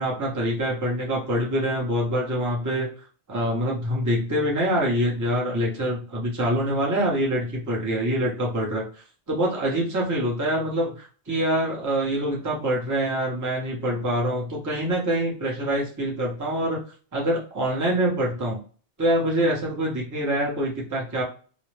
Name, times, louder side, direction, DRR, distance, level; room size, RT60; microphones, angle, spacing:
voice 1, 0.0-2.9 3.3-16.8 17.1-18.6 19.0-21.2, right 1 dB, 20° right, -3 dB, 0.7 m, -25 dB
2.4 x 2.1 x 3.2 m, 0.40 s
omnidirectional pair, 1.2 m